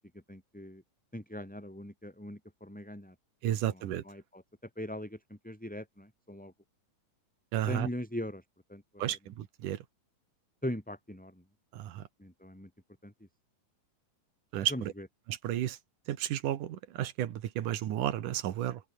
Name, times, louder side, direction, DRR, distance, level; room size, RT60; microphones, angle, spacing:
voice 1, 0.3-0.8 1.1-3.1 3.5-4.4 4.8-6.5 7.6-8.4 8.7-9.2 10.6-11.4 12.2-12.7 13.0-13.1 14.7-15.1, left 1 dB, ahead, 5.2 m, -40 dB
voice 2, 3.4-4.0 7.5-7.9 9.0-9.8 11.7-12.0 14.5-14.7 15.3-15.8 16.1-18.8, right 12 dB, 70° right, 2.9 m, -32 dB
open air
omnidirectional pair, 3.8 m